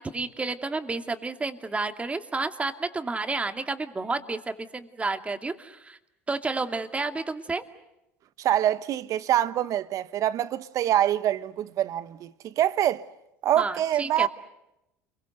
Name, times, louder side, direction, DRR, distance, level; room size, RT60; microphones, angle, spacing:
voice 1, 0.0-6.0 6.3-7.6 13.6-14.3, right 3 dB, 20° right, 2.5 m, -31 dB
voice 2, 8.4-13.0 13.4-14.3, right 11 dB, 50° right, 1.2 m, -25 dB
29.5 x 23.0 x 8.1 m
hypercardioid pair, 80°, 7 cm